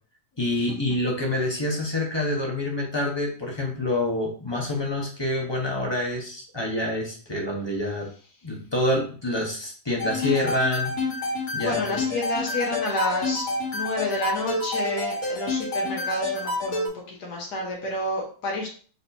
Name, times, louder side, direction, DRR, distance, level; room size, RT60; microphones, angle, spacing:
voice 1, 0.4-8.1 8.4-10.9 11.5-12.0, left 1 dB, 20° left, -1 dB, 0.9 m, -27 dB
sound 1, 10.0-16.9, left 2 dB, 60° left, 1.9 m, -28 dB
voice 2, 11.6-13.4 13.7-18.7, left 1 dB, 80° left, -2 dB, 1.7 m, -29 dB
4.7 x 4.0 x 2.7 m, 0.41 s
omnidirectional pair, 1.7 m